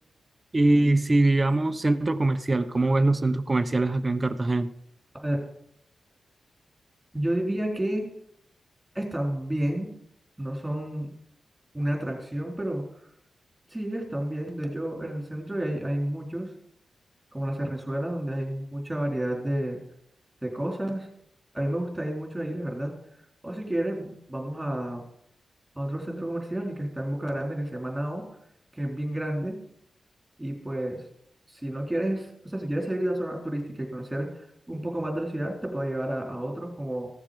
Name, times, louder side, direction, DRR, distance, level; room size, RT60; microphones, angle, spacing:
voice 1, 0.5-4.7, right 2 dB, 30° right, 11 dB, 0.7 m, -22 dB
voice 2, 7.1-8.1 8.9-9.9 10.4-11.1 11.7-12.8 13.7-16.5 17.3-19.8 20.4-21.1 21.5-22.9 23.4-25.0 25.8-28.2 28.8-29.6 30.4-31.0 31.5-37.1, right 1 dB, 10° right, 0 dB, 3.9 m, -30 dB
16.0 x 7.3 x 5.2 m, 0.74 s
cardioid pair, 85°, 0 cm